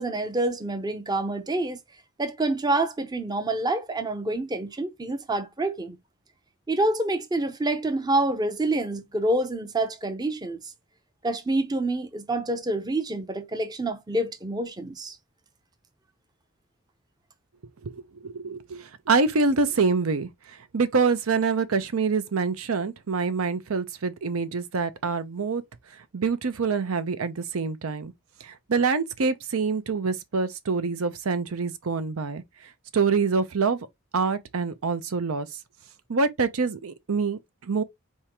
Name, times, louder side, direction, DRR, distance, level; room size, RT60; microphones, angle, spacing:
voice 1, 0.0-1.8 2.2-6.0 6.7-10.6 11.2-15.2, right 2 dB, 20° right, 0.6 m, -27 dB
voice 2, 18.2-20.3 20.7-25.6 26.1-28.1 28.4-32.4 32.9-33.8 34.1-35.5 36.1-37.8, right 4 dB, 80° right, 0.7 m, -25 dB
4.3 x 3.6 x 2.9 m
head